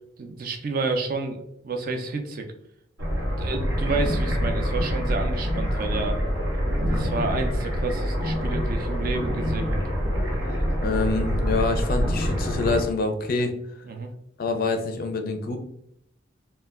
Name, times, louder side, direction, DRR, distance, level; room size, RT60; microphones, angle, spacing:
voice 1, 0.2-2.5 3.4-6.2 6.9-9.8 13.9-14.1, right 3 dB, 45° right, 5 dB, 0.4 m, -30 dB
sound 1, 3.0-12.8, equal, 85° right, 1.0 m, -26 dB
voice 2, 10.8-13.6 14.4-15.6, left 3 dB, 45° left, 6 dB, 0.4 m, -26 dB
2.2 x 2.2 x 3.4 m, 0.75 s
head